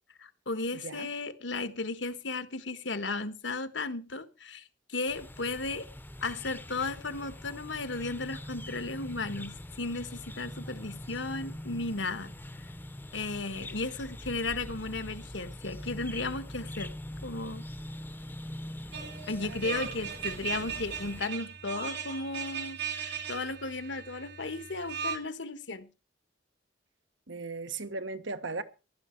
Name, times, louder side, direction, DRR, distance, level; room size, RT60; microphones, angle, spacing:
voice 1, 0.2-5.9 6.2-12.3 13.1-16.9 17.2-17.6 19.3-25.9, left 3 dB, 75° left, 1.5 m, -35 dB
sound 1, 5.1-21.2, left 1 dB, 10° left, 0.8 m, -43 dB
sound 2, 18.9-25.2, right 7 dB, 65° right, 2.9 m, -38 dB
voice 2, 19.5-19.9 27.3-28.6, right 3 dB, 80° right, 1.3 m, -37 dB
15.5 x 12.0 x 4.6 m
head